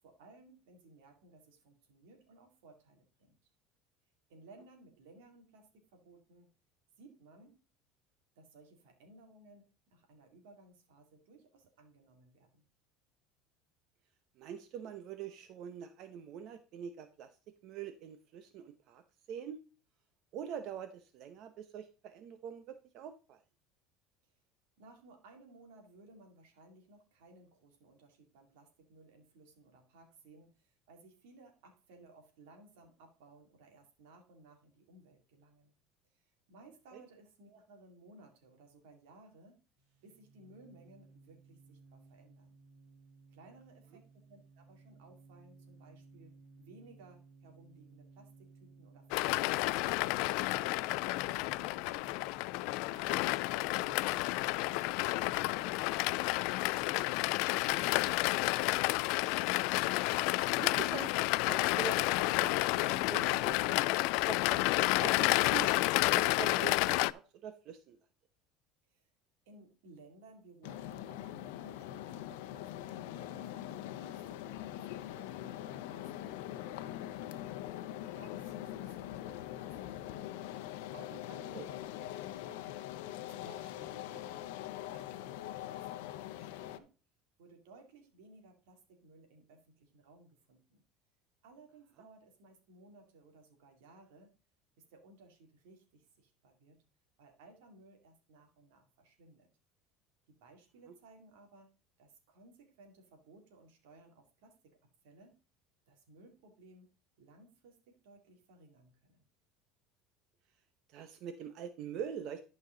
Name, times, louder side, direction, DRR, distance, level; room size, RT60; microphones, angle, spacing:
voice 1, 0.0-3.4 4.3-6.5 7.0-7.6 8.4-12.6 24.3-24.4 24.8-35.7 36.1-39.6 40.0-42.6 43.3-50.7 51.1-52.1 52.8-56.3 56.6-59.0 68.9-69.1 69.5-77.5 77.9-80.3 80.9-82.9 83.3-86.9 87.4-90.8 91.4-94.3 94.9-96.8 97.2-99.5 100.3-101.7 102.0-104.6 105.0-105.4 105.9-106.9 107.2-109.3, right 2 dB, 90° right, 3 dB, 2.7 m, -59 dB
voice 2, 14.4-17.3 17.6-19.0 19.3-19.6 20.3-23.4 36.9-37.0 60.5-64.0 64.3-64.7 65.0-68.0 81.5-81.7 110.9-112.4, right 8 dB, 55° right, 9 dB, 0.8 m, -44 dB
sound 1, 39.8-58.0, right 4 dB, 70° right, 2.8 m, -60 dB
sound 2, 49.1-67.1, left 21 dB, 70° left, 0.3 m, -30 dB
sound 3, 70.6-86.8, left 13 dB, 85° left, 0.7 m, -43 dB
12.0 x 5.3 x 3.9 m, 0.34 s
cardioid pair, 140°, 0 cm